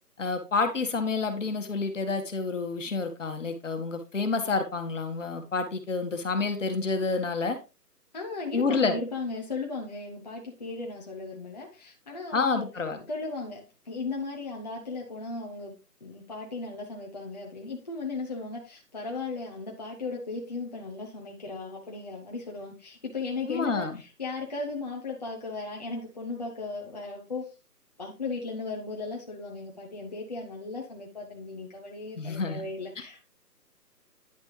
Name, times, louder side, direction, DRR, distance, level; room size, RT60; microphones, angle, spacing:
voice 1, 0.2-7.6 8.5-9.0 12.3-13.0 23.5-24.0 32.2-32.6, left 4 dB, 50° left, 7 dB, 1.7 m, -29 dB
voice 2, 8.1-12.7 13.1-15.7 16.0-27.5 28.0-33.2, left 3 dB, 25° left, -1 dB, 1.0 m, -36 dB
10.5 x 6.3 x 3.2 m, 0.30 s
figure-of-eight pair, 165°, 49 cm